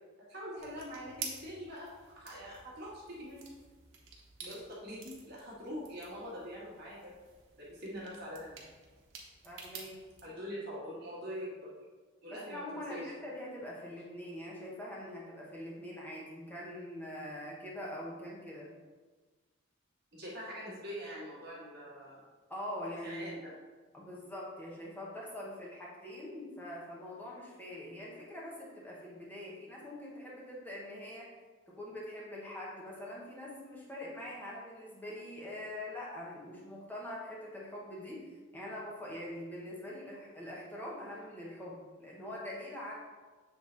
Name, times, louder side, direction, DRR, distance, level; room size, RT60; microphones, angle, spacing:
voice 1, 0.3-1.9 2.2-3.4 4.4-7.1 7.6-8.6 10.2-11.7 12.2-13.0 20.1-22.2 23.0-23.5, equal, 50° right, -7 dB, 1.8 m, -44 dB
sound 1, 0.6-10.3, right 5 dB, 80° right, 1.1 m, -50 dB
voice 2, 9.4-9.9 12.3-18.7 22.5-23.4 23.9-31.3 31.7-42.9, left 1 dB, 10° left, -5 dB, 1.2 m, -43 dB
7.6 x 3.4 x 4.0 m, 1.3 s
head